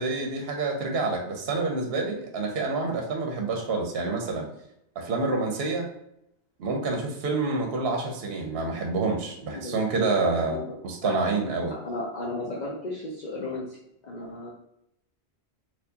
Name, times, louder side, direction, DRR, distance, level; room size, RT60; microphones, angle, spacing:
voice 1, 0.0-4.5 5.0-5.9 6.6-11.7, right 3 dB, 65° right, 2 dB, 0.9 m, -28 dB
voice 2, 9.5-11.2 11.7-13.8 14.0-14.5, left 2 dB, 45° left, -3 dB, 0.7 m, -35 dB
4.4 x 2.4 x 2.7 m, 0.78 s
omnidirectional pair, 1.2 m